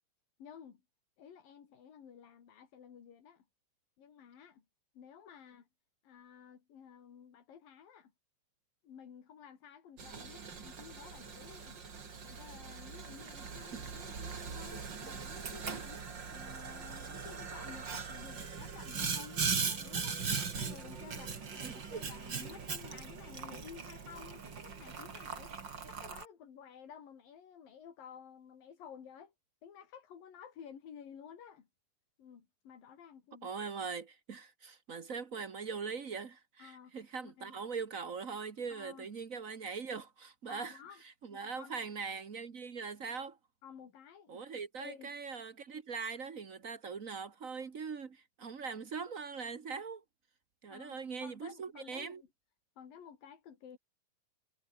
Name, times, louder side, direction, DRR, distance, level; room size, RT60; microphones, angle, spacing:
voice 1, 0.4-0.8 1.2-3.4 4.0-4.6 4.9-5.7 6.0-8.1 8.8-11.8 12.2-16.0 16.3-20.2 20.6-29.3 29.6-31.7 32.2-33.5 36.6-37.0 37.2-37.6 38.7-39.1 40.5-41.0 41.3-41.7 43.6-44.4 44.8-45.2 50.7-52.3 52.8-53.8, left 8 dB, 75° left, 4.8 m, -53 dB
Boiling, 10.0-26.3, right 5 dB, 35° right, 2.9 m, -40 dB
voice 2, 21.6-22.0 33.4-40.8 41.2-43.4 44.3-50.0 50.6-52.2, right 5 dB, 75° right, 0.7 m, -41 dB
omnidirectional pair, 4.0 m